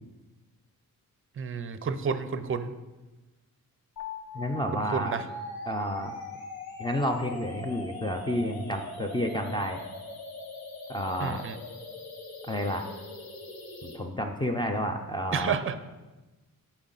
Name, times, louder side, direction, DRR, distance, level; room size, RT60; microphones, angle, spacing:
voice 1, 1.4-2.7 4.7-5.2 11.2-11.6 15.3-15.7, right 6 dB, 35° right, 11 dB, 0.5 m, -30 dB
sound 1, 4.0-14.0, left 2 dB, 90° left, 1.2 m, -41 dB
voice 2, 4.3-5.1 5.7-6.2 6.8-9.8 10.9-11.4 12.5-12.9 13.8-15.6, equal, 15° left, 4 dB, 0.5 m, -30 dB
11.0 x 4.4 x 4.0 m, 1.1 s
wide cardioid pair, 135°, 35 cm